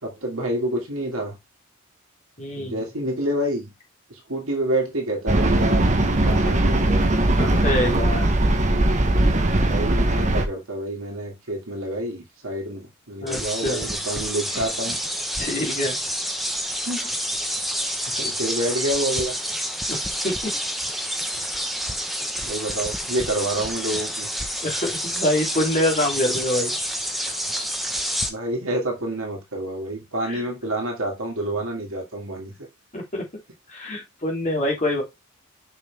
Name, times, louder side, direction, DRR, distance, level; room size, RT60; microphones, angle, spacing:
voice 1, 0.0-1.4 2.5-3.7 4.1-5.8 6.1-7.1 9.5-15.0 16.9-17.0 18.1-19.3 22.4-24.3 28.3-32.5, right 1 dB, 70° right, 2.2 m, -28 dB
voice 2, 2.4-2.8 7.3-8.3 13.2-13.9 15.4-16.0 19.9-20.0 20.2-20.5 24.6-26.7 27.1-27.3 30.2-30.4 32.9-33.2 33.7-35.0, left 1 dB, 35° left, 2.9 m, -25 dB
sound 1, 5.3-10.4, right 1 dB, 35° right, 1.1 m, -20 dB
sound 2, 13.3-28.3, equal, ahead, 0.9 m, -28 dB
6.2 x 5.7 x 3.4 m
head